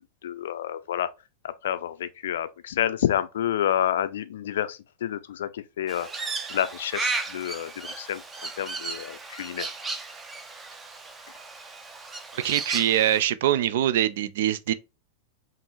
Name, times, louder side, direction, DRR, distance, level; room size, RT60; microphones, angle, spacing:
voice 1, 0.2-1.1 1.4-9.7, left 10 dB, 60° left, 0.4 m, -29 dB
Crow, 5.9-13.2, right 4 dB, 15° right, 0.6 m, -35 dB
voice 2, 12.3-14.7, right 11 dB, 55° right, 0.4 m, -23 dB
5.2 x 2.5 x 3.0 m
figure-of-eight pair, 90°, 0 cm